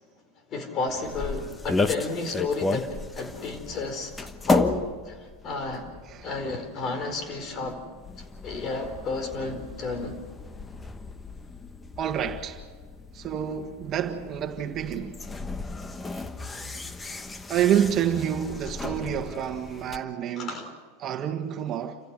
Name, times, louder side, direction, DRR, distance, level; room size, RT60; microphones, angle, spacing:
voice 1, 0.5-5.9 6.2-7.8 8.2-10.2 20.4-20.8, left 3 dB, 40° left, 4.5 m, -32 dB
sound 1, 0.9-20.0, left 3 dB, 15° left, 1.2 m, -34 dB
voice 2, 12.0-12.6 13.1-15.2 17.5-20.6 21.0-22.0, right 9 dB, 40° right, 1.7 m, -28 dB
29.0 x 15.5 x 7.5 m
hypercardioid pair, 105°, 0 cm